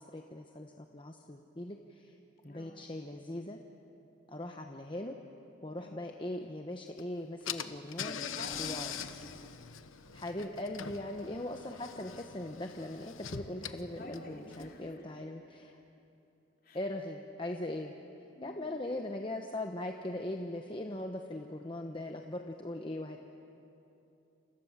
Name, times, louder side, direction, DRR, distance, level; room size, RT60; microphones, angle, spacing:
voice 1, 0.0-2.2 2.4-3.6 4.3-5.2 5.6-8.2 8.6-8.9 10.1-15.8 16.7-17.9 18.4-23.2, left 1 dB, 25° left, 4 dB, 1.0 m, -40 dB
voice 2, 2.5-2.8 5.8-6.0 8.0-9.5 14.0-15.0 16.6-16.8 18.4-18.7, left 1 dB, 45° left, 1 dB, 3.6 m, -48 dB
Car / Engine, 7.0-7.1 7.5-14.9, left 8 dB, 90° left, 1.1 m, -43 dB
28.5 x 27.0 x 7.4 m, 2.9 s
head